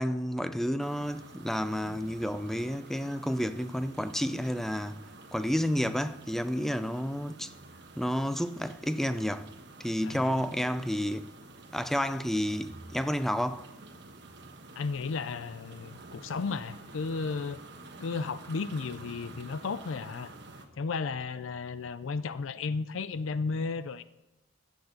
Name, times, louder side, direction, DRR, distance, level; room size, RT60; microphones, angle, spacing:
voice 1, 0.0-5.0 5.3-7.5 8.0-9.5 9.8-11.3 11.7-13.7, equal, ahead, 0.4 m, -30 dB
sound 1, 0.8-20.7, right 2 dB, 60° right, 1.2 m, -49 dB
voice 2, 10.0-10.4 14.7-17.6 18.0-20.3 20.7-24.0, left 4 dB, 75° left, 0.5 m, -34 dB
15.0 x 6.3 x 6.5 m
head